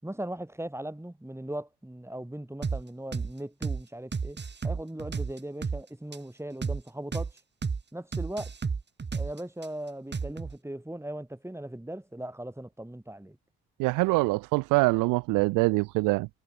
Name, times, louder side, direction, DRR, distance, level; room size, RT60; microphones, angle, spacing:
voice 1, 0.0-4.4 4.6-7.3 7.9-8.5 9.1-13.4, right 1 dB, 10° right, 4.3 m, -38 dB
sound 1, 2.6-2.8 3.1-3.3 3.6-3.8 4.1-5.8 6.1-6.2 6.6-6.8 7.1-7.3 7.6-7.8 8.1-9.7 10.1-10.5, right 5 dB, 35° right, 1.6 m, -31 dB
voice 2, 13.8-16.3, right 24 dB, 80° right, 0.6 m, -24 dB
hypercardioid pair, 45°, 32 cm